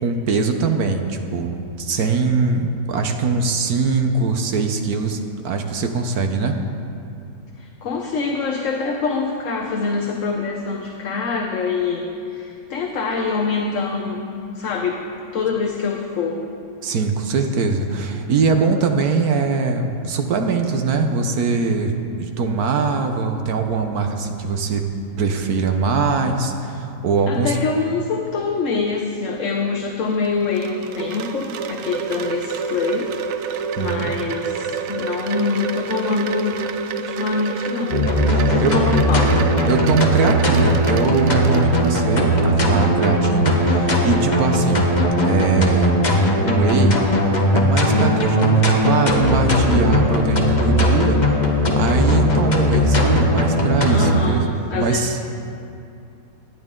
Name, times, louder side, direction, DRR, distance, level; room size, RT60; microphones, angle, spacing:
voice 1, 0.0-6.6 16.8-24.9 25.2-27.6 33.8-34.1 38.3-38.8 39.7-44.9 45.2-46.0 46.4-51.2 51.6-55.2, right 4 dB, 60° right, 5 dB, 1.3 m, -22 dB
voice 2, 7.6-14.2 14.5-15.0 15.3-16.4 27.3-33.1 33.8-36.6 37.0-38.0 38.5-39.4 53.9-55.2, left 4 dB, 55° left, 2 dB, 1.1 m, -25 dB
Wind chime, 30.1-42.4, right 6 dB, 85° right, 1.3 m, -29 dB
sound 1, 37.9-54.2, equal, 25° left, 1.3 m, -18 dB
18.5 x 11.5 x 3.8 m, 2.6 s
omnidirectional pair, 1.9 m